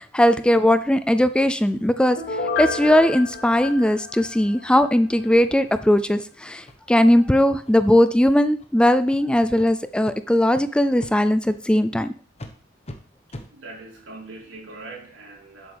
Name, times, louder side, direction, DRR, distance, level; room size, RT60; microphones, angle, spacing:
voice 1, 0.0-2.2 2.6-12.1, left 1 dB, 5° left, 12 dB, 0.3 m, -19 dB
Piano, 2.2-4.8 5.2-5.3, left 3 dB, 55° left, 3.2 m, -30 dB
sound 1, 3.1-3.3 3.7-3.8 4.2-4.3 4.7-4.8 5.2-5.3 5.6-5.8 6.1-6.3 6.7-6.8 7.1-7.3 7.6-8.0 8.5-8.7 9.1-9.2 9.6-9.7 10.0-10.2 10.5-10.6 11.0-11.1 11.5-11.6 11.9-12.0 12.4-12.5 12.8-13.0 13.3-13.5, left 1 dB, 35° left, 1.1 m, -41 dB
voice 2, 13.3-15.7, right 3 dB, 85° right, -1 dB, 3.5 m, -41 dB
11.0 x 8.0 x 3.4 m, 0.42 s
head